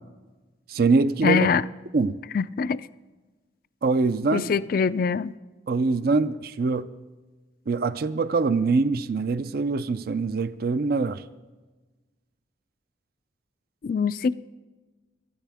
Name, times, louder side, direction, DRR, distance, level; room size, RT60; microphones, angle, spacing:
voice 1, 0.7-1.5 1.9-2.2 3.8-4.5 5.7-6.9 7.7-11.2, right 4 dB, 55° right, 0.4 m, -24 dB
voice 2, 1.2-1.6 2.3-2.8 4.3-5.3 13.8-14.3, left 6 dB, 50° left, 0.3 m, -23 dB
18.0 x 13.0 x 3.5 m
head